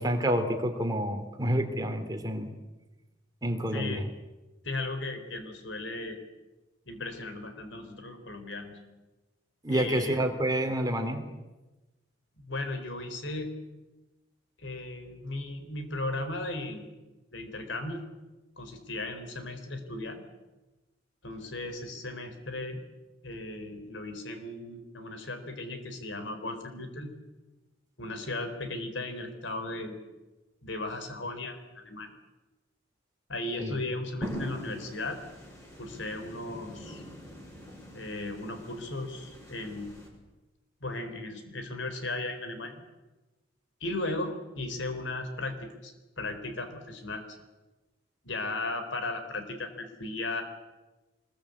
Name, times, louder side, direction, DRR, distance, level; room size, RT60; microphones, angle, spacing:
voice 1, 0.0-2.5 3.4-4.1 9.6-11.2 33.6-33.8, right 1 dB, 20° right, 4 dB, 3.0 m, -28 dB
voice 2, 3.7-4.1 4.6-6.2 6.9-8.8 9.7-10.3 12.4-13.5 14.6-16.9 17.3-18.0 18.6-20.2 21.2-22.8 23.2-27.1 28.0-30.0 30.6-32.1 33.3-35.2 35.8-37.0 37.9-40.0 40.8-42.7 43.8-47.2 48.2-50.4, left 2 dB, 80° left, 8 dB, 4.3 m, -36 dB
sound 1, 34.2-40.1, equal, 15° left, 6.5 m, -42 dB
25.0 x 21.5 x 8.5 m, 1.1 s
head